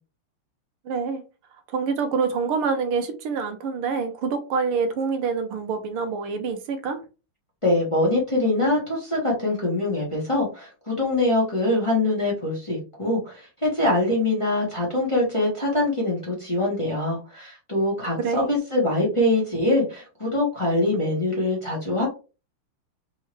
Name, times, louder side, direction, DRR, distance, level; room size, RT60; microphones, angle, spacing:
voice 1, 0.8-1.2 1.7-7.0 18.2-18.5, right 5 dB, 80° right, 1.7 m, -26 dB
voice 2, 7.6-22.1, left 2 dB, 15° left, 1.4 m, -23 dB
4.3 x 3.5 x 3.1 m
omnidirectional pair, 2.4 m